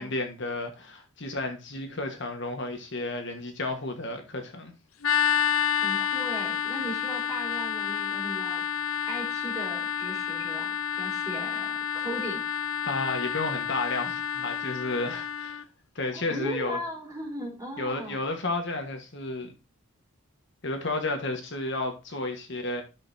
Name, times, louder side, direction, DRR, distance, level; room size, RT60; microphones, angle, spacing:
voice 1, 0.0-4.7 12.8-15.6 15.9-16.8 17.8-19.5 20.6-22.8, left 2 dB, 55° left, 1.5 m, -32 dB
sound 1, 5.0-15.6, left 8 dB, 70° left, 0.6 m, -29 dB
voice 2, 5.8-8.6 9.1-12.4 15.1-15.2 16.1-18.2, equal, 15° right, 3.8 m, -37 dB
12.5 x 6.4 x 2.7 m
head